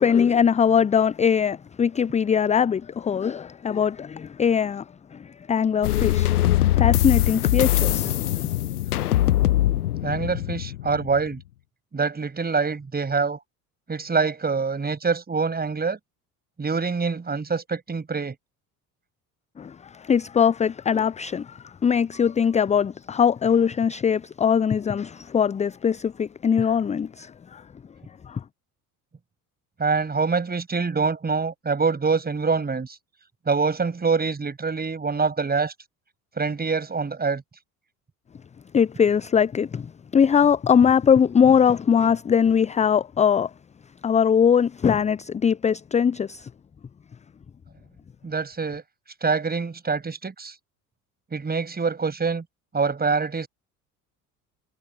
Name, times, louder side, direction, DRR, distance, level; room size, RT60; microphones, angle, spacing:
voice 1, 0.0-4.8 5.1-8.5 19.6-27.6 28.3-28.4 38.7-43.5 44.0-46.5, left 7 dB, 15° left, 0.7 m, -21 dB
sound 1, 5.8-11.3, left 14 dB, 80° left, 0.6 m, -22 dB
voice 2, 10.0-11.4 11.9-13.4 13.9-16.0 16.6-18.3 29.8-33.0 33.5-35.7 36.4-37.4 48.2-48.8 49.2-50.5 51.3-52.4 52.7-53.5, right 4 dB, 20° right, 7.5 m, -25 dB
figure-of-eight pair, 60°, 45 cm